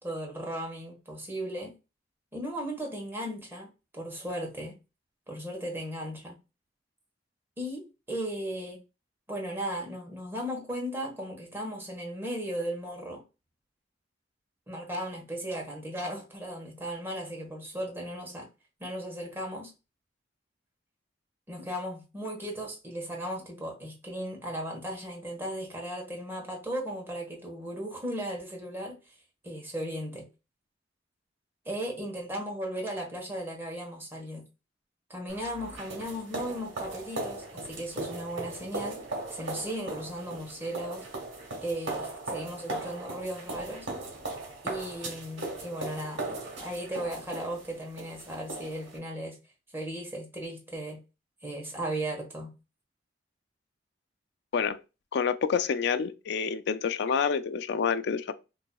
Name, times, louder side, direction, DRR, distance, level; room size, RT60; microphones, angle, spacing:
voice 1, 0.0-1.7 2.3-4.7 5.3-6.4 7.6-8.8 9.3-13.2 14.7-18.5 18.8-19.7 21.5-29.0 29.4-30.3 31.6-34.4 35.1-39.0 39.3-41.0 41.6-43.9 44.6-49.4 49.7-51.0 51.4-52.5, right 1 dB, 15° right, 1.1 m, -36 dB
sound 1, 35.3-49.0, right 2 dB, 80° right, 1.2 m, -38 dB
voice 2, 55.1-58.3, left 6 dB, 65° left, 0.3 m, -28 dB
4.0 x 2.7 x 2.3 m
head